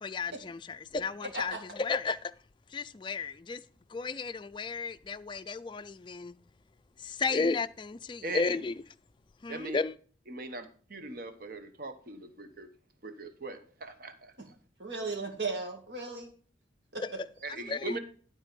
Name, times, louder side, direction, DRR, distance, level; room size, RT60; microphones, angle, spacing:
voice 1, 0.0-2.3 2.7-3.6 3.9-6.4 7.0-8.7 9.4-10.0 17.0-18.0, left 4 dB, 25° left, 0.3 m, -33 dB
voice 2, 8.2-8.6 9.5-9.8 10.3-12.7 13.0-14.5 17.4-18.0, right 3 dB, 55° right, 1.0 m, -40 dB
voice 3, 14.8-16.3 16.9-17.2, right 3 dB, 75° right, 2.3 m, -36 dB
11.5 x 4.5 x 5.2 m
head